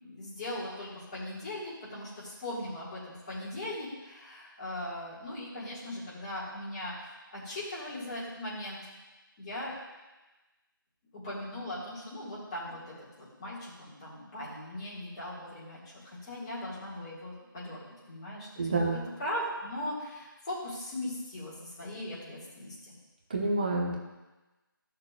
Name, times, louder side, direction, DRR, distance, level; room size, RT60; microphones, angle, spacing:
voice 1, 0.0-8.8 9.4-9.7 11.1-22.9, left 1 dB, 20° left, -9 dB, 2.0 m, -39 dB
voice 2, 18.6-19.0 23.3-23.9, right 2 dB, 25° right, -1 dB, 0.9 m, -28 dB
13.0 x 6.7 x 2.5 m, 1.1 s
figure-of-eight pair, 165°, 12 cm